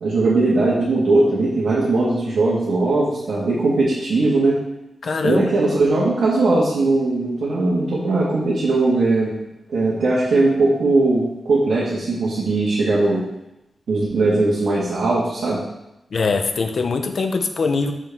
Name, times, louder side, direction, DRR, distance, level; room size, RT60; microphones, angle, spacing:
voice 1, 0.0-4.6 5.2-9.3 9.7-13.2 13.9-15.6, right 2 dB, 75° right, -7 dB, 1.7 m, -19 dB
voice 2, 5.0-5.5 16.1-17.9, left 4 dB, 55° left, 6 dB, 0.6 m, -22 dB
6.4 x 6.3 x 3.6 m, 0.90 s
wide cardioid pair, 150°, 0 cm